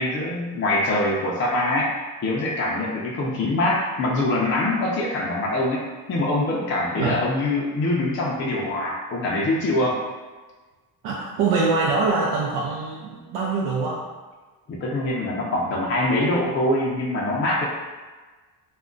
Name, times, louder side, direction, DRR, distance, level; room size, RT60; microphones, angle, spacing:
voice 1, 0.0-1.9 2.2-10.0 14.7-17.7, left 1 dB, 35° left, -4 dB, 0.4 m, -24 dB
voice 2, 11.0-14.1, right 4 dB, 80° right, -4 dB, 0.6 m, -24 dB
2.3 x 2.1 x 3.7 m, 1.3 s
cardioid pair, 145°, 38 cm